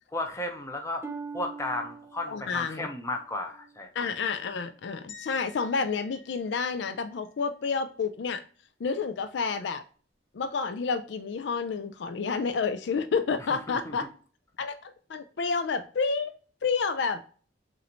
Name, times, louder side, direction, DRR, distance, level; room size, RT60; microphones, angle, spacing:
voice 1, 0.1-1.0 1.3-3.9 13.7-14.0, left 2 dB, 15° left, 4 dB, 0.8 m, -34 dB
Harp, 1.0-4.8 5.3-5.7 6.4-6.5, right 4 dB, 10° right, 0.5 m, -44 dB
voice 2, 2.3-2.9 3.9-8.4 8.8-9.8 10.3-14.1 14.6-16.3 16.6-17.2, left 5 dB, 65° left, 9 dB, 0.4 m, -29 dB
sound 1, 5.1-7.3, left 7 dB, 40° left, 1.3 m, -50 dB
6.3 x 2.6 x 2.9 m, 0.41 s
head